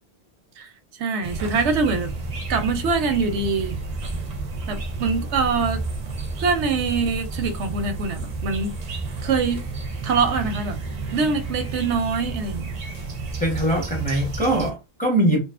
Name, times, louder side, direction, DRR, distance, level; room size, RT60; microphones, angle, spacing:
voice 1, 1.0-2.1 2.5-3.8 4.7-5.8 6.4-8.8 9.2-9.7 10.0-10.8 11.1-12.7, right 4 dB, 90° right, 0.9 m, -24 dB
sound 1, 1.2-14.7, right 3 dB, 45° right, 0.6 m, -31 dB
voice 2, 13.4-15.4, right 1 dB, 10° left, 0.7 m, -22 dB
2.6 x 2.3 x 2.4 m
omnidirectional pair, 1.1 m